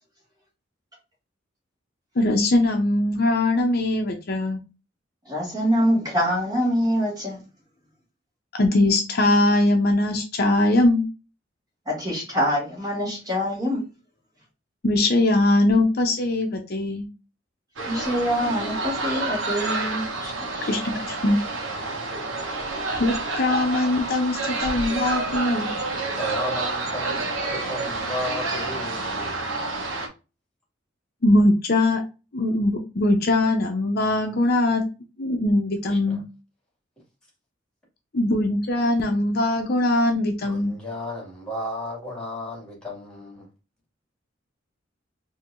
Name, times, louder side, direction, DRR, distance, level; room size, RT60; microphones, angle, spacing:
voice 1, 2.2-4.6 8.6-11.0 14.8-17.1 20.7-21.4 23.0-25.7 31.2-32.0 32.3-34.8 35.2-36.2 38.1-40.7, left 1 dB, 55° left, 0.7 m, -21 dB
voice 2, 5.3-7.4 11.9-13.8 17.8-20.3 20.6-20.7, equal, 20° right, 2.1 m, -25 dB
sound 1, 17.8-30.1, right 3 dB, 90° right, 1.0 m, -29 dB
voice 3, 26.1-29.3 35.9-36.2 40.4-43.5, left 1 dB, 5° left, 2.3 m, -34 dB
4.4 x 2.8 x 2.5 m
head